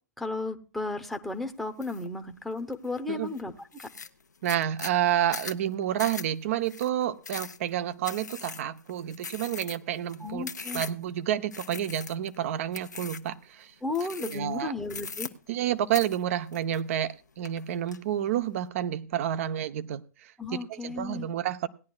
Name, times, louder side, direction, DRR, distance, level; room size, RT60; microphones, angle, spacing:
voice 1, 0.2-3.9 10.2-10.8 13.8-15.3 20.4-21.3, left 3 dB, ahead, 0.8 m, -34 dB
sound 1, 1.8-2.1 2.5-3.0 3.4-3.5 3.7-11.1 11.5-12.4 12.7-13.3 13.9-14.6 14.9-15.7 15.9-17.1 17.4-18.0, left 4 dB, 85° left, 0.8 m, -40 dB
voice 2, 4.4-10.5 10.7-13.7 14.2-14.7 15.5-21.7, right 11 dB, 50° right, 0.7 m, -29 dB
18.5 x 10.5 x 2.3 m
figure-of-eight pair, 115°, 9 cm